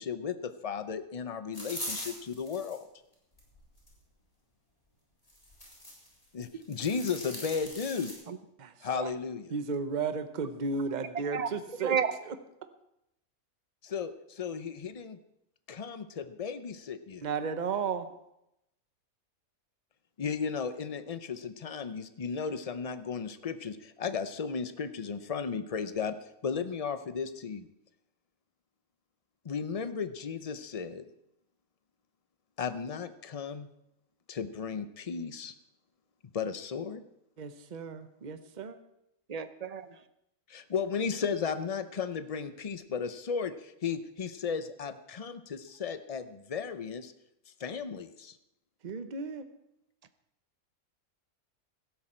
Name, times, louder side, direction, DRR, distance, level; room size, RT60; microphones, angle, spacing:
voice 1, 0.0-2.9 6.3-8.1 8.8-9.5 13.8-15.2 15.7-17.3 20.2-26.2 26.4-27.7 29.4-31.1 32.6-33.7 34.3-35.5 36.3-37.0 40.5-47.1 47.6-48.4, left 6 dB, 55° left, 11 dB, 0.4 m, -35 dB
sound 1, 1.5-2.8 3.3-3.9 5.3-6.1 6.4-8.1, equal, 25° left, 4.0 m, -41 dB
voice 2, 9.5-11.9 17.2-18.1 37.4-38.8 48.8-49.5, right 5 dB, 35° right, 9 dB, 0.9 m, -34 dB
voice 3, 11.8-12.1 39.3-40.0, right 7 dB, 55° right, 11 dB, 0.4 m, -31 dB
16.5 x 13.0 x 4.4 m, 0.82 s
omnidirectional pair, 1.6 m